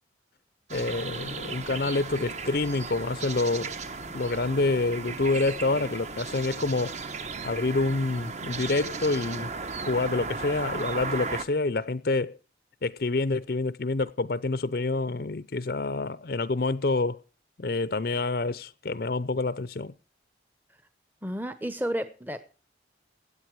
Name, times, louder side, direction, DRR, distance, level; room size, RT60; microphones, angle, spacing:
voice 1, 0.7-3.7 4.1-7.0 7.4-9.5 9.9-12.4 12.8-17.2 17.6-19.9, left 3 dB, 55° left, 0.6 m, -27 dB
sound 1, 0.7-11.4, right 4 dB, 35° right, 1.1 m, -36 dB
voice 2, 21.2-22.5, equal, 10° right, 0.9 m, -32 dB
16.5 x 9.6 x 4.7 m
head